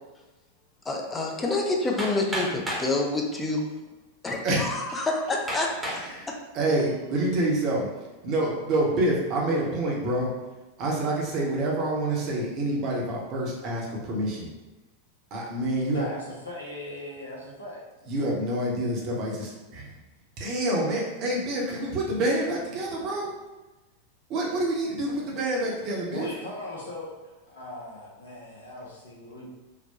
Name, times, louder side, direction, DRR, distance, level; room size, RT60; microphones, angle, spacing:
voice 1, 0.9-3.7 4.2-5.7, left 2 dB, 15° left, 0 dB, 0.5 m, -27 dB
Hammer, 2.0-2.9 3.8-3.9 4.5-4.6 5.5-6.1 6.7-7.1, equal, 10° right, 0.9 m, -32 dB
voice 2, 4.4-5.0 5.9-6.3 6.5-7.9 8.2-10.3 10.8-14.5 15.3-16.1 18.1-20.0 20.4-23.3 24.3-26.3, right 1 dB, 40° right, -3 dB, 0.9 m, -27 dB
voice 3, 15.8-17.8 26.1-27.1 27.4-29.5, left 1 dB, 70° left, -3 dB, 0.9 m, -38 dB
3.9 x 2.2 x 2.8 m, 1.1 s
figure-of-eight pair, 90°, 0 cm